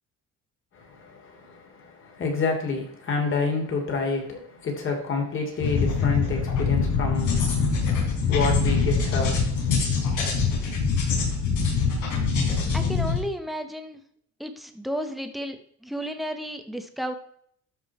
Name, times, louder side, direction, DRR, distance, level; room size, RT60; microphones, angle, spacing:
voice 1, 0.7-10.2, left 4 dB, 40° left, 3.0 m, -29 dB
sound 1, 5.6-13.2, left 5 dB, 65° left, 3.9 m, -24 dB
voice 2, 12.7-14.0 14.4-17.1, equal, ahead, 0.9 m, -33 dB
12.5 x 5.5 x 4.3 m
cardioid pair, 160°, 32 cm